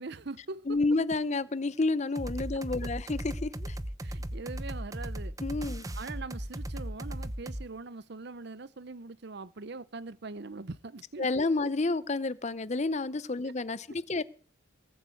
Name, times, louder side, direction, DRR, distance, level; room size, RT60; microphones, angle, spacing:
voice 1, 0.0-0.8 2.8-2.9 4.0-5.3 6.0-11.5 14.1-14.2, right 3 dB, 55° right, 0.7 m, -42 dB
voice 2, 0.7-3.8 5.4-5.9 11.2-14.2, left 3 dB, 35° left, 0.6 m, -30 dB
sound 1, 2.2-7.7, right 1 dB, 15° right, 0.8 m, -37 dB
19.0 x 7.5 x 8.4 m
head